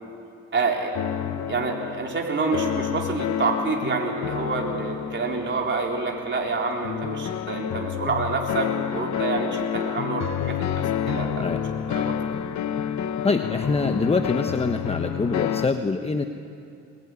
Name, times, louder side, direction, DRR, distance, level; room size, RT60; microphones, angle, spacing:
voice 1, 0.5-0.9 1.5-10.7 11.1-11.4 11.9-12.2, right 4 dB, 40° right, 0 dB, 4.0 m, -27 dB
sound 1, 0.9-15.7, left 9 dB, 65° left, 1.0 m, -29 dB
voice 2, 13.2-16.2, left 4 dB, 20° left, 6 dB, 1.1 m, -25 dB
22.5 x 21.0 x 9.8 m, 2.5 s
cardioid pair, 90°, 30 cm